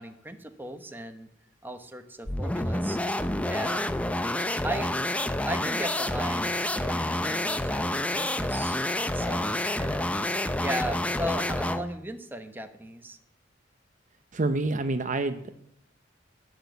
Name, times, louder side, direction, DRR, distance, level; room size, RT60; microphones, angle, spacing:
voice 1, 0.0-1.3 1.6-3.0 3.5-4.0 4.6-4.9 5.2-8.8 9.1-13.2, right 1 dB, 10° right, 6 dB, 1.1 m, -37 dB
sound 1, 2.2-11.9, left 1 dB, 5° left, 0.5 m, -28 dB
voice 2, 14.3-15.5, right 2 dB, 40° right, 9 dB, 0.7 m, -27 dB
18.5 x 6.4 x 8.1 m, 0.73 s
head